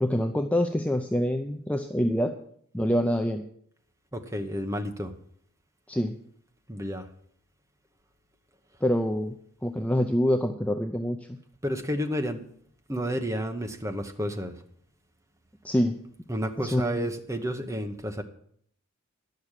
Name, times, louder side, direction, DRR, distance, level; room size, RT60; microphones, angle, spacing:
voice 1, 0.0-2.4 2.7-3.4 5.9-6.2 8.8-9.4 9.6-11.2 15.6-16.0 16.6-17.1, equal, 5° left, 5 dB, 0.5 m, -26 dB
voice 2, 4.1-5.1 6.7-7.1 11.6-12.4 12.9-14.5 16.3-18.2, equal, 15° right, 6 dB, 1.0 m, -31 dB
11.0 x 6.6 x 8.9 m, 0.64 s
head